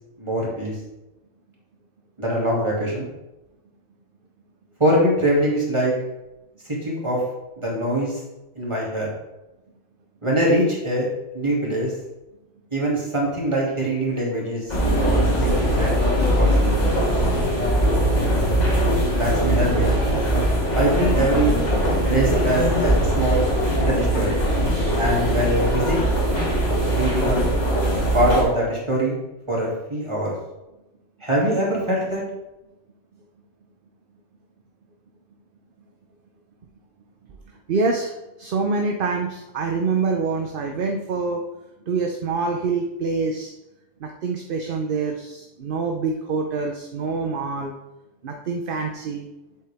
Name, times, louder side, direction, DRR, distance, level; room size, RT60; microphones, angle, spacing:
voice 1, 0.2-0.7 2.2-3.1 4.8-5.9 6.8-7.2 7.6-8.2 8.6-9.1 10.2-11.1 11.3-11.9 12.7-16.0 16.4-16.8 19.1-20.0 20.8-21.5 22.1-23.4 23.8-24.4 25.0-26.0 26.9-27.5 28.1-29.2 29.5-30.3 31.2-32.2, right 1 dB, 20° right, -4 dB, 2.5 m, -23 dB
sound 1, 14.7-28.4, right 1 dB, 30° left, 2.1 m, -21 dB
voice 2, 37.7-41.4 41.9-43.5 44.0-47.7 48.2-49.3, right 4 dB, 50° right, 3 dB, 0.8 m, -26 dB
7.9 x 7.8 x 3.4 m, 0.97 s
omnidirectional pair, 1.4 m